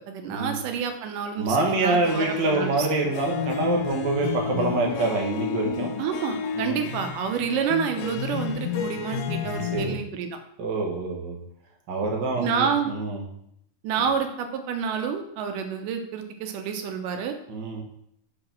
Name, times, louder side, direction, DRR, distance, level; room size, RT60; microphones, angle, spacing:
voice 1, 0.1-2.9 6.0-10.4 12.4-12.9 13.8-17.3, right 6 dB, 85° right, 6 dB, 2.3 m, -28 dB
voice 2, 1.4-6.0 6.5-6.8 9.7-9.9 10.6-11.4 11.9-13.2 17.5-17.8, right 3 dB, 55° right, 0 dB, 1.3 m, -26 dB
Harp, 2.0-9.9, left 6 dB, 85° left, 2.2 m, -34 dB
sound 1, 3.2-10.0, left 7 dB, 65° left, 2.5 m, -33 dB
5.3 x 4.8 x 5.8 m, 0.73 s
omnidirectional pair, 3.8 m